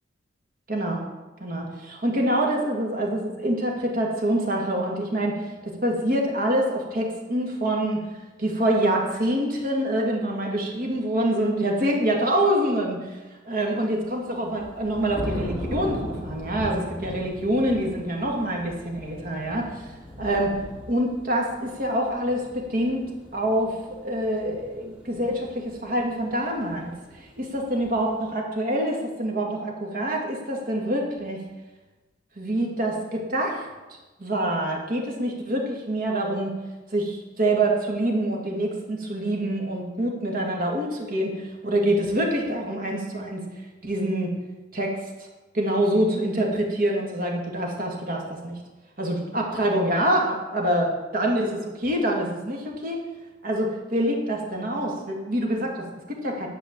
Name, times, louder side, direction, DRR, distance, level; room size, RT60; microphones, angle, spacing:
voice 1, 0.7-1.0 1.4-8.1 8.4-13.2 13.5-19.8 20.2-20.5 20.9-23.8 24.0-26.9 27.2-31.4 32.4-36.6 36.9-43.5 43.8-44.3 44.7-45.1 45.5-48.6 49.0-53.0 53.4-56.5, right 1 dB, 50° right, 0 dB, 2.0 m, -26 dB
sound 1, 14.0-28.3, equal, 5° right, 2.7 m, -39 dB
10.5 x 4.9 x 7.5 m, 1.2 s
head